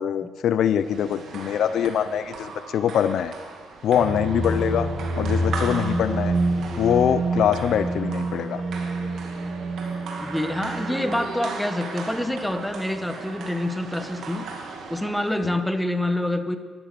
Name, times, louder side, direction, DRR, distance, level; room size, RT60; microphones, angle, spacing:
voice 1, 0.0-3.3 3.8-4.9 5.1-6.3 6.8-8.6 15.4-15.5, left 9 dB, 70° left, 13 dB, 0.5 m, -23 dB
sound 1, 0.7-15.6, right 4 dB, 70° right, 2.3 m, -37 dB
sound 2, 3.9-11.6, right 2 dB, 55° right, 3.4 m, -27 dB
voice 2, 10.2-14.5 14.9-16.6, left 1 dB, 5° left, 8 dB, 1.1 m, -26 dB
12.5 x 12.0 x 6.8 m, 1.5 s
cardioid pair, 90°, 0 cm